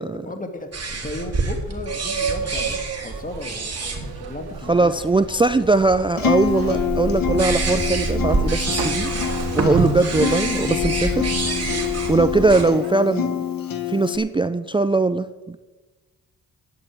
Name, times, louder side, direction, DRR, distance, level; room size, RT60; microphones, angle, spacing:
voice 1, 0.0-4.9, left 2 dB, 20° left, 6 dB, 2.0 m, -35 dB
sound 1, 0.7-12.6, right 3 dB, 40° right, 2.9 m, -27 dB
sound 2, 1.9-13.0, right 7 dB, 80° right, 1.1 m, -36 dB
voice 2, 4.7-9.1 9.5-11.3 12.1-13.4 13.9-15.6, right 3 dB, 15° right, 12 dB, 0.4 m, -20 dB
Acoustic guitar, 6.2-14.2, left 9 dB, 60° left, 1.6 m, -26 dB
11.0 x 7.8 x 8.5 m, 1.2 s
cardioid pair, 85°, 37 cm